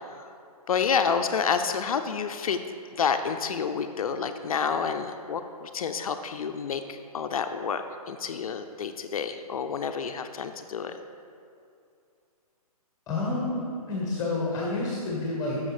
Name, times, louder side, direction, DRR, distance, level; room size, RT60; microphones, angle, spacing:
voice 1, 0.7-2.6 2.9-10.9, left 6 dB, 65° left, 8 dB, 0.6 m, -29 dB
voice 2, 13.1-15.6, left 2 dB, 20° left, -3 dB, 1.3 m, -29 dB
8.8 x 6.4 x 5.0 m, 2.5 s
hypercardioid pair, 145°, 20 cm